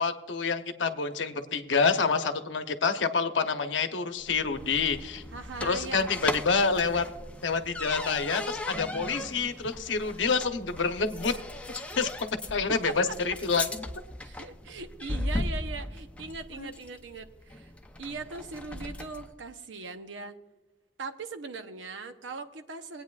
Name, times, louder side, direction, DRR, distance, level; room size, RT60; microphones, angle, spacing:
voice 1, 0.0-5.2 5.6-7.1 7.4-11.4 12.0-12.1 12.5-13.8 16.6-16.7, left 4 dB, 85° left, 8 dB, 0.8 m, -27 dB
sound 1, 4.2-19.3, left 1 dB, 5° left, 0.6 m, -38 dB
voice 2, 5.3-6.1 11.9-12.0 12.9-13.4 14.2-17.7 18.0-20.4 21.0-23.0, right 3 dB, 85° right, 8 dB, 0.8 m, -40 dB
21.5 x 8.9 x 2.4 m, 1.2 s
head